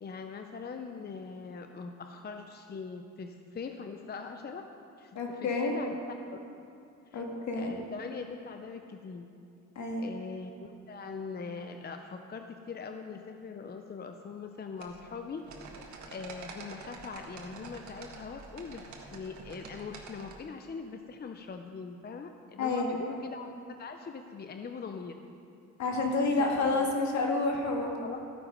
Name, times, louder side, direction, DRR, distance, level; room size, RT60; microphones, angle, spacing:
voice 1, 0.0-4.7 5.0-6.0 6.3-6.7 7.1-7.2 7.5-9.3 10.0-15.4 16.1-23.5 23.8-25.2 26.4-26.9 28.0-28.2, left 5 dB, 35° left, 6 dB, 0.6 m, -42 dB
voice 2, 5.1-5.8 7.1-7.7 9.8-10.0 22.6-23.0 25.8-28.2, left 3 dB, 65° left, 0 dB, 2.2 m, -29 dB
sound 1, 14.8-20.4, right 4 dB, 70° right, 1.8 m, -47 dB
14.5 x 9.1 x 5.3 m, 2.6 s
cardioid pair, 90°, 30 cm